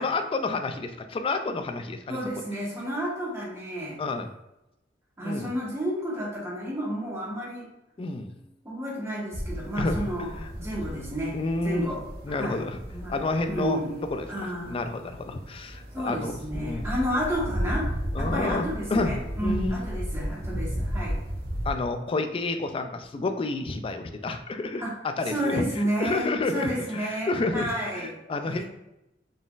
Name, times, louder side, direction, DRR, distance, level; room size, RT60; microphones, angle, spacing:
voice 1, 0.0-2.2 4.0-4.3 5.2-5.5 8.0-8.4 9.8-10.1 10.4-10.5 11.3-11.9 12.3-12.8 13.1-13.8 14.1-14.3 14.7-16.9 18.1-19.8 21.7-28.6, left 3 dB, 30° left, 7 dB, 0.3 m, -30 dB
voice 2, 2.1-4.0 5.2-7.7 8.6-10.3 10.5-11.4 11.6-12.0 12.3-12.6 12.9-13.2 13.4-14.0 14.3-14.8 15.9-17.9 18.2-21.2 24.8-24.9 25.3-28.2 28.4-28.6, equal, 15° right, -5 dB, 1.2 m, -31 dB
sound 1, 9.3-21.7, equal, 60° right, 0.8 m, -34 dB
4.0 x 3.8 x 2.4 m, 0.91 s
head